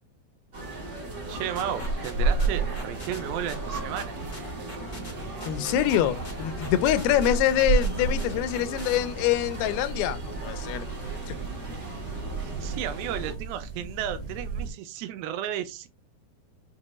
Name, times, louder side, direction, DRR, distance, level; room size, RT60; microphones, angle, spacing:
sound 1, 0.5-13.3, right 3 dB, 65° right, 1.0 m, -32 dB
sound 2, 1.3-9.0, left 1 dB, 55° left, 0.5 m, -42 dB
voice 1, 1.3-4.2 12.4-15.9, right 10 dB, 85° right, 2.5 m, -33 dB
voice 2, 5.5-10.9 11.3-11.4, left 12 dB, 85° left, 2.4 m, -25 dB
sound 3, 5.7-14.7, right 5 dB, 40° right, 1.3 m, -38 dB
6.3 x 2.2 x 3.0 m
omnidirectional pair, 4.3 m